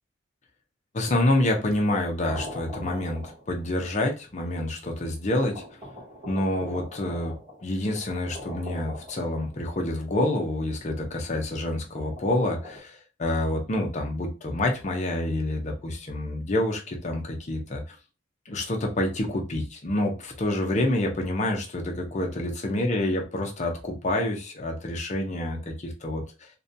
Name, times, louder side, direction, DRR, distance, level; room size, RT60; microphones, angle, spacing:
voice 1, 0.9-5.8 6.3-7.4 7.6-18.0 18.5-26.5, left 1 dB, 35° left, 2 dB, 0.5 m, -27 dB
sound 1, 2.3-3.8 4.7-4.8 5.4-9.9 11.7-12.8, left 1 dB, 30° right, 0.9 m, -42 dB
2.5 x 2.1 x 2.6 m, 0.31 s
head